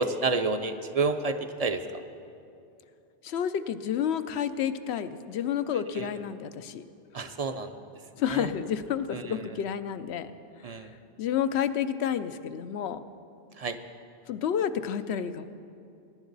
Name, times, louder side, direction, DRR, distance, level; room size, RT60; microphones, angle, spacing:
voice 1, 0.0-1.8 7.1-7.7 8.3-8.5 9.1-9.4 10.6-10.9 13.6-13.8, right 3 dB, 45° right, 9 dB, 0.6 m, -29 dB
voice 2, 3.2-6.8 8.2-10.3 11.2-13.0 14.3-15.4, left 8 dB, 80° left, 12 dB, 0.9 m, -30 dB
20.5 x 10.5 x 4.0 m, 2.6 s
omnidirectional pair, 1.1 m